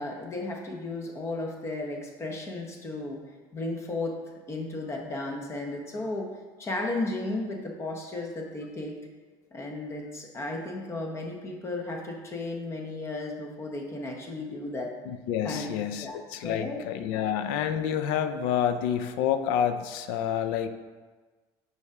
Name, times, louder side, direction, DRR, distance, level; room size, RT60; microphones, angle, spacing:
voice 1, 0.0-3.2 3.5-4.2 4.5-6.3 6.6-9.0 9.5-14.9 15.4-15.7 16.0-16.8 17.1-17.2, left 2 dB, 25° left, 2 dB, 1.1 m, -34 dB
voice 2, 15.1-20.7, left 9 dB, 85° left, 10 dB, 0.5 m, -28 dB
5.4 x 4.8 x 4.8 m, 1.4 s
cardioid pair, 125°, 10 cm